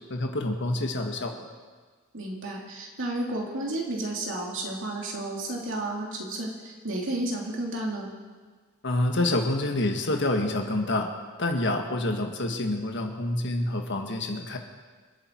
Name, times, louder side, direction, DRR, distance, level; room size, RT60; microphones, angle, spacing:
voice 1, 0.1-1.4 8.8-11.1 11.4-14.6, left 1 dB, 60° left, 3 dB, 1.8 m, -27 dB
voice 2, 2.1-8.1, right 1 dB, 65° right, -1 dB, 3.0 m, -32 dB
27.0 x 9.1 x 4.6 m, 1.5 s
head